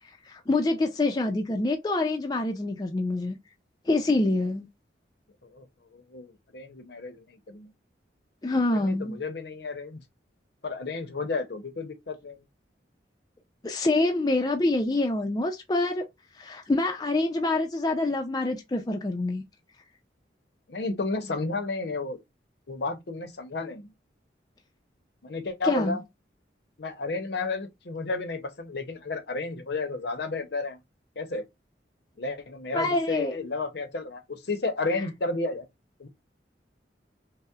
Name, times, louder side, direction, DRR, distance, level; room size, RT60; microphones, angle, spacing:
voice 1, 0.3-3.4 3.9-4.7 8.4-9.2 13.6-16.1 16.4-19.4 25.7-26.0 32.7-33.4, left 2 dB, 20° left, 0.4 m, -26 dB
voice 2, 5.9-7.7 8.7-10.0 10.6-12.4 20.7-22.2 22.7-23.9 25.2-26.0 26.8-30.8 31.2-31.4 32.2-35.7 36.0-36.1, left 3 dB, 60° left, 0.7 m, -32 dB
5.4 x 2.0 x 2.3 m
head